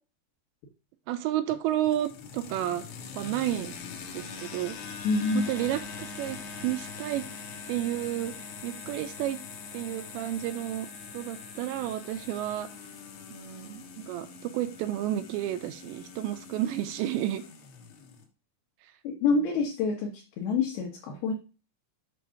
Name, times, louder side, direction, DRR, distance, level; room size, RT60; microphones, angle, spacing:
voice 1, 1.1-2.8 3.1-3.7 4.1-4.8 5.3-7.2 7.7-8.3 8.6-9.4 9.7-10.9 11.1-12.7 13.3-17.4, right 13 dB, 85° right, 9 dB, 2.7 m, -31 dB
sound 1, 1.5-18.3, left 5 dB, 90° left, 3.8 m, -43 dB
voice 2, 5.0-5.5 19.0-21.3, left 4 dB, 70° left, 0 dB, 2.7 m, -27 dB
8.6 x 3.1 x 5.6 m, 0.35 s
omnidirectional pair, 5.3 m